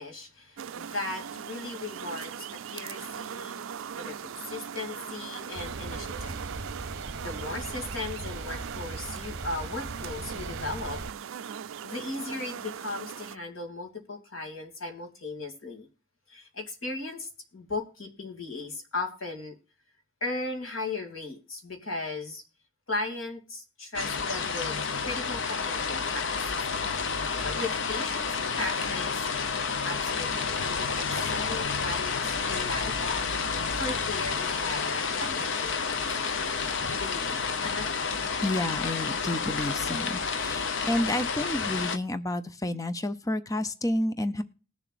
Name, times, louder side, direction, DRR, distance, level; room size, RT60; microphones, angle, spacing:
voice 1, 0.0-6.4 7.2-11.0 11.3-11.5 11.8-15.9 16.3-19.5 20.2-22.4 22.9-26.4 27.4-29.2 29.8-38.0, left 2 dB, 80° left, 3 dB, 2.7 m, -37 dB
sound 1, 0.6-13.4, right 8 dB, 75° right, 0.4 m, -40 dB
sound 2, 5.5-11.1, right 3 dB, 60° right, 1.0 m, -39 dB
sound 3, 23.9-42.0, left 5 dB, 65° left, 0.8 m, -30 dB
voice 2, 38.4-44.4, left 1 dB, 15° left, 10 dB, 0.6 m, -30 dB
20.5 x 7.0 x 2.5 m, 0.37 s
head